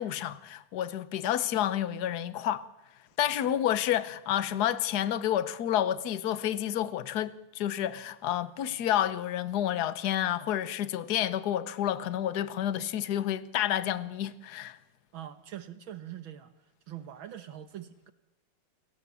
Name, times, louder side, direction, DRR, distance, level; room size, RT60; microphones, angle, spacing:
voice 1, 0.0-2.6 3.2-14.8, left 11 dB, 55° left, 1.3 m, -29 dB
voice 2, 15.1-16.5 16.9-18.1, right 11 dB, 70° right, 1.8 m, -43 dB
29.5 x 18.5 x 7.0 m
omnidirectional pair, 2.3 m